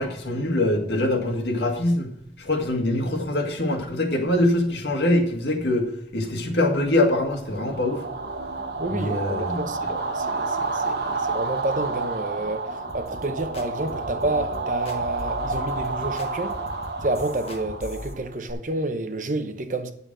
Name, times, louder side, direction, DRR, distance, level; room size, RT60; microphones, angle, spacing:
voice 1, 0.0-2.1 2.4-8.0 8.9-9.6, left 1 dB, 75° left, 1.9 m, -23 dB
sound 1, 7.4-18.5, right 3 dB, 70° right, 1.3 m, -30 dB
voice 2, 8.8-16.6 17.0-19.9, right 2 dB, 45° right, 0.9 m, -29 dB
sound 2, 12.9-18.1, equal, 35° left, 1.4 m, -40 dB
9.0 x 7.0 x 6.1 m
head